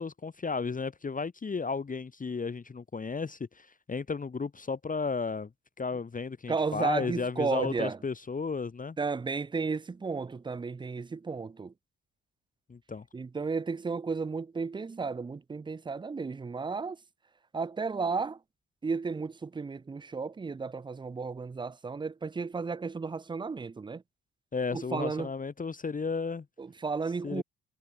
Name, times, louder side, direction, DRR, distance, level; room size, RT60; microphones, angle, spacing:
voice 1, 0.0-5.5 5.8-9.0 12.7-13.0 24.5-26.4 27.2-27.4, left 4 dB, 25° left, 1.4 m, -34 dB
voice 2, 6.5-8.0 9.0-11.7 13.1-17.0 17.5-18.4 18.8-24.0 24.7-25.3 26.6-27.4, right 4 dB, 15° right, 0.5 m, -33 dB
cardioid pair, 90°, 30 cm